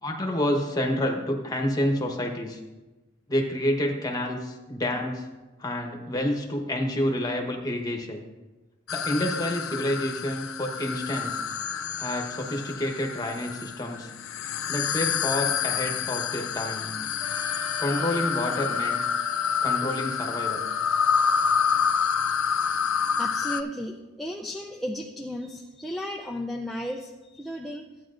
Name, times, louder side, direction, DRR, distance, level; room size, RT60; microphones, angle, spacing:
voice 1, 0.0-2.6 3.3-5.3 5.6-8.2 8.9-11.4 12.0-14.1 14.7-17.0 17.8-19.0 19.6-20.7, left 1 dB, 20° left, 2 dB, 1.0 m, -28 dB
sound 1, 8.9-23.6, left 7 dB, 80° left, 0.4 m, -28 dB
Wind instrument woodwind instrument, 17.2-22.1, left 4 dB, 25° right, 2.2 m, -43 dB
voice 2, 23.2-27.9, equal, ahead, 0 dB, 0.4 m, -34 dB
13.5 x 9.0 x 2.5 m, 1.1 s
head